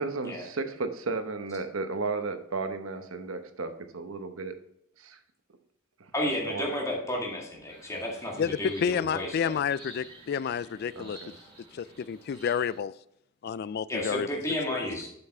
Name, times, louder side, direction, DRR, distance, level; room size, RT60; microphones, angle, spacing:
voice 1, 0.0-4.5 5.0-5.2 6.0-6.1 6.5-6.8 11.0-11.3, right 3 dB, 75° right, 0.9 m, -34 dB
voice 2, 6.1-9.6 13.9-15.1, left 1 dB, 15° left, 2.0 m, -32 dB
sound 1, 7.7-12.8, right 2 dB, 25° right, 2.5 m, -52 dB
voice 3, 8.4-11.2 11.7-12.9 13.4-14.4 14.7-15.0, left 7 dB, 50° left, 0.3 m, -30 dB
8.0 x 5.9 x 4.4 m
head